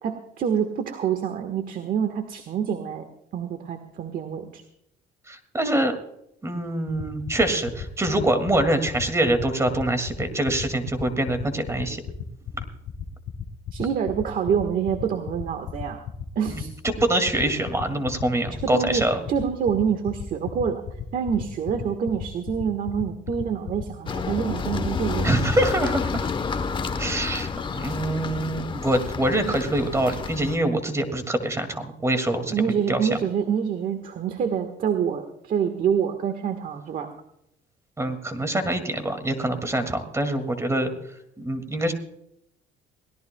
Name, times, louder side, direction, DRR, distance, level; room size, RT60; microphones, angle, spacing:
voice 1, 0.0-3.0 3.3-4.6 13.7-16.0 16.3-16.7 18.6-20.8 21.1-25.3 32.5-37.1, right 7 dB, 55° right, 7 dB, 1.5 m, -26 dB
voice 2, 5.3-6.0 6.4-12.0 16.5-19.2 25.2-26.3 27.0-32.5 32.9-33.2 38.0-40.9 41.4-41.9, right 1 dB, 15° right, 8 dB, 2.2 m, -25 dB
sound 1, 6.9-24.3, left 9 dB, 70° left, 1.6 m, -33 dB
sound 2, 24.1-30.6, left 5 dB, 30° left, 1.0 m, -29 dB
23.0 x 17.5 x 2.3 m, 0.77 s
cardioid pair, 110°, 17 cm